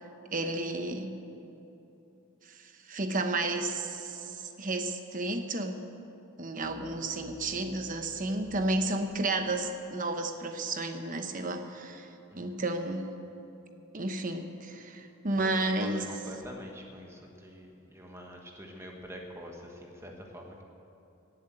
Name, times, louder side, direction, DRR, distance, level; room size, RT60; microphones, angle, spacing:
voice 1, 0.3-1.2 2.5-5.8 6.4-12.1 12.3-13.1 13.9-16.0, right 2 dB, 40° right, 6 dB, 1.0 m, -32 dB
sound 1, 6.6-10.5, equal, 5° left, 1.9 m, -52 dB
voice 2, 12.3-12.7 15.4-20.6, equal, 10° right, 1 dB, 1.4 m, -46 dB
18.5 x 7.9 x 7.9 m, 2.9 s
head